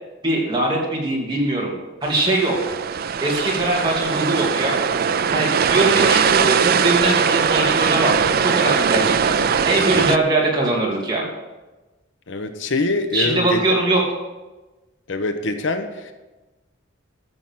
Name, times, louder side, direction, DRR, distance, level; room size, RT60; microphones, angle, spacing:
voice 1, 0.2-1.7 2.0-2.6 3.2-4.8 5.3-8.1 8.4-9.3 9.7-11.3 13.1-14.0, right 2 dB, 25° right, -3 dB, 2.7 m, -21 dB
sound 1, 2.0-10.2, right 6 dB, 50° right, 0.4 m, -20 dB
voice 2, 12.3-13.6 15.1-16.1, left 2 dB, 65° left, 7 dB, 1.0 m, -24 dB
13.0 x 7.1 x 6.0 m, 1.1 s
head